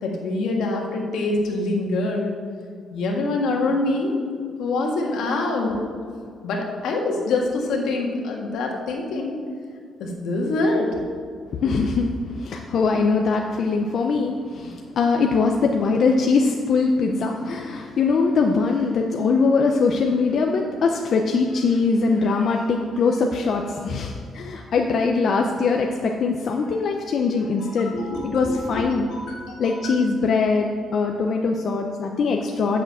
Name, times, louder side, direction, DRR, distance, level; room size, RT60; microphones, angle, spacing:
voice 1, 0.0-2.3 2.9-4.1 4.6-5.7 6.4-9.4 10.0-10.9 14.6-14.7 27.8-29.9, left 2 dB, 75° left, 0 dB, 1.7 m, -25 dB
voice 2, 11.6-27.9 28.2-29.0 29.6-32.8, left 4 dB, 50° left, 2 dB, 0.6 m, -22 dB
7.9 x 6.6 x 7.3 m, 2.2 s
cardioid pair, 160°, 0 cm